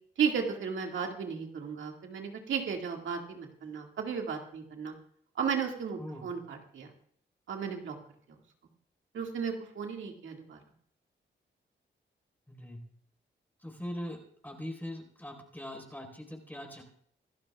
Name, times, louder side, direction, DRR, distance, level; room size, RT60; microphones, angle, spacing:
voice 1, 0.2-4.9 5.4-6.9 7.5-8.0 9.1-10.6, right 6 dB, 85° right, 2 dB, 2.0 m, -34 dB
voice 2, 6.0-6.3 12.5-12.8 13.6-14.2 14.4-16.8, left 1 dB, 10° left, 2 dB, 4.2 m, -41 dB
26.5 x 12.0 x 2.3 m, 0.63 s
cardioid pair, 75°, 19 cm